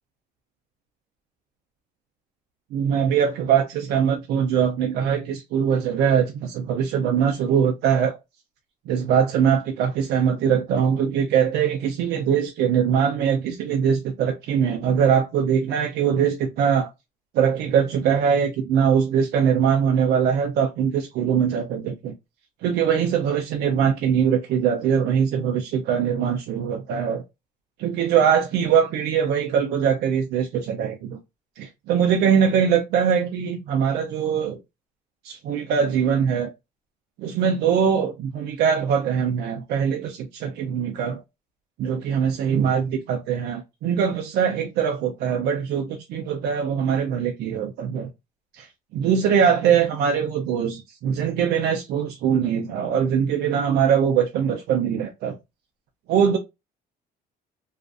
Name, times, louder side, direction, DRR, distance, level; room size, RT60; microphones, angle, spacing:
voice 1, 2.7-8.2 8.9-16.9 17.3-22.1 22.6-27.2 27.8-31.2 31.6-34.6 35.2-36.5 37.2-41.2 41.8-48.1 48.6-48.7 48.9-55.3 56.1-56.4, right 7 dB, 70° right, 0.5 m, -22 dB
2.4 x 2.4 x 2.3 m
cardioid pair, 110°, 17 cm